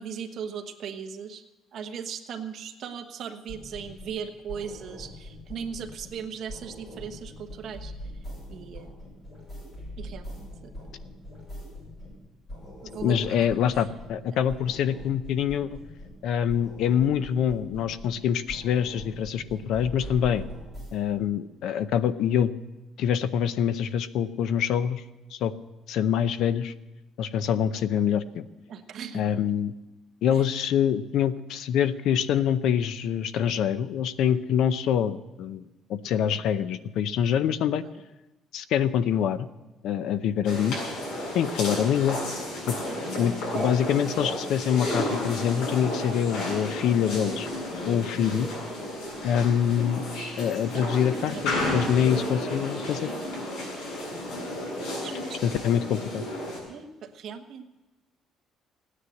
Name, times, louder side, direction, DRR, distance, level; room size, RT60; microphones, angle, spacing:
voice 1, 0.0-1.4 1.7-7.9 8.5-9.0 10.0-10.5 12.9-13.5 28.7-29.2 30.3-30.4 37.8-37.9 42.8-43.0 50.7-51.7 55.0-55.4 56.7-57.7, right 7 dB, 45° right, 5 dB, 1.1 m, -38 dB
sound 1, 3.5-4.2 4.5-6.2 6.5-12.2 12.5-14.2 14.5-16.2 16.5-18.2 18.5-20.9, left 1 dB, 25° left, 7.3 m, -42 dB
voice 2, 13.0-15.8 16.2-20.4 20.9-22.5 23.0-25.0 25.3-25.5 25.9-26.7 27.2-28.4 29.1-29.7 30.2-35.6 35.9-37.8 38.5-39.5 39.8-40.8 41.3-42.2 42.7-42.8 43.1-47.5 47.9-48.5 49.2-50.1 50.4-53.1 55.4-56.2, left 9 dB, 60° left, 14 dB, 0.6 m, -25 dB
sound 2, 40.4-56.6, left 1 dB, 85° left, 7.2 m, -32 dB
16.5 x 9.9 x 7.8 m, 1.0 s
cardioid pair, 180°, 0 cm